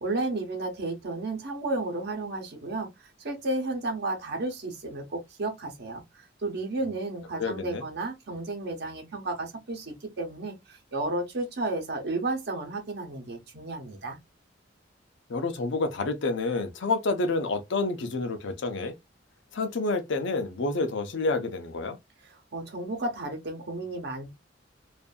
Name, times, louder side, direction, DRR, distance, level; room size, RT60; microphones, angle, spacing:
voice 1, 0.0-2.9 3.2-14.2 22.2-24.3, right 2 dB, 60° right, 0.9 m, -33 dB
voice 2, 7.4-7.8 15.3-18.9 19.5-22.0, left 3 dB, 70° left, 0.6 m, -28 dB
2.6 x 2.5 x 2.2 m
head